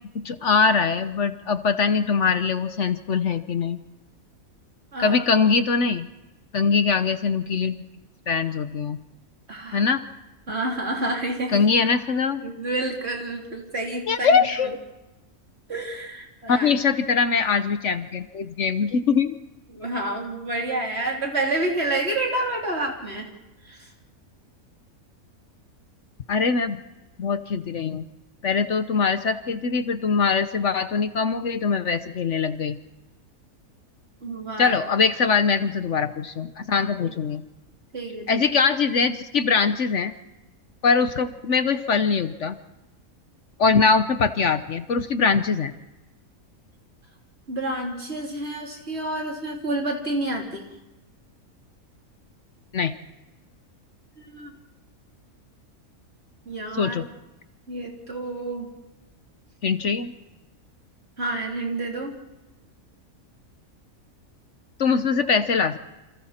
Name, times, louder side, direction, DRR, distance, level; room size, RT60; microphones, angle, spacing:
voice 1, 0.1-3.8 5.0-6.1 6.5-7.8 8.3-9.0 9.7-10.0 11.5-12.4 14.1-14.7 16.5-19.4 26.3-26.8 27.2-28.0 28.4-32.8 34.6-37.4 38.3-40.1 40.8-42.6 43.6-45.7 52.7-52.9 56.8-57.0 59.6-60.1 64.8-65.8, left 5 dB, 60° left, 10 dB, 1.2 m, -22 dB
voice 2, 4.9-5.3 9.5-9.9 10.5-11.7 12.4-14.7 15.7-16.7 19.7-23.3 23.6-23.9 34.2-34.8 37.0-37.1 37.9-38.5 47.5-50.6 54.2-54.5 56.5-57.0 57.7-58.7 61.2-62.2, right 2 dB, 45° right, 0 dB, 3.9 m, -29 dB
28.5 x 26.5 x 4.4 m, 1.0 s
omnidirectional pair, 1.5 m